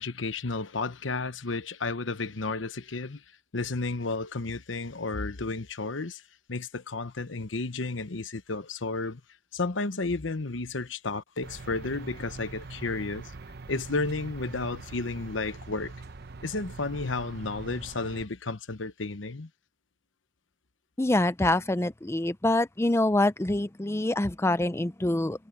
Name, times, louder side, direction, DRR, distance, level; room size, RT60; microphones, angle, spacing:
voice 1, 0.0-3.2 3.5-6.2 6.5-9.2 9.5-13.3 13.7-15.9 16.4-19.5, left 3 dB, 85° left, 1.1 m, -32 dB
sound 1, 11.4-18.3, right 3 dB, 60° right, 0.9 m, -43 dB
voice 2, 21.0-25.5, left 1 dB, 15° left, 0.5 m, -25 dB
head